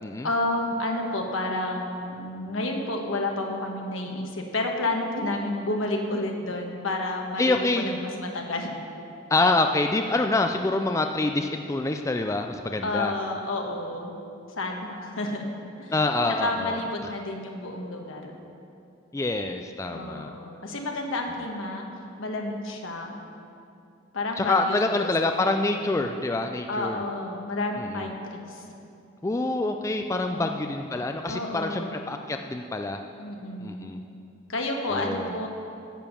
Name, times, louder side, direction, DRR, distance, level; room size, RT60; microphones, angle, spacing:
voice 1, 0.2-8.7 12.8-14.1 14.6-15.5 15.8-15.9 16.3-18.3 19.9-21.9 22.2-23.1 24.1-25.1 26.7-28.6 30.3-30.8 31.3-32.0 33.2-33.9 34.5-35.5, left 2 dB, 80° left, 2 dB, 1.3 m, -30 dB
voice 2, 7.4-8.0 9.3-13.1 15.9-16.8 19.1-20.3 24.4-27.0 27.8-28.0 29.2-33.0 33.6-34.0 34.9-35.3, left 2 dB, 15° left, 5 dB, 0.3 m, -26 dB
10.5 x 7.2 x 6.9 m, 2.6 s
head